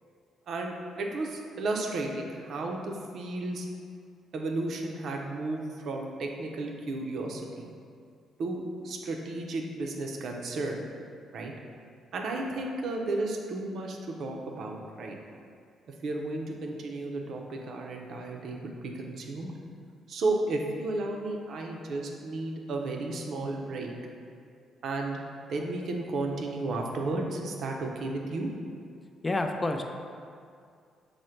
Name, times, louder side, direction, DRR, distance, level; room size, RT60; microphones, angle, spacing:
voice 1, 0.5-3.7 4.3-7.7 8.4-10.8 11.3-11.5 12.1-15.2 16.0-19.5 20.1-24.0 24.8-25.2 25.5-28.5, right 2 dB, 65° right, 1 dB, 0.5 m, -33 dB
voice 2, 29.2-29.8, left 2 dB, 20° left, 5 dB, 0.3 m, -28 dB
5.0 x 2.1 x 4.3 m, 2.3 s
cardioid pair, 90°, 0 cm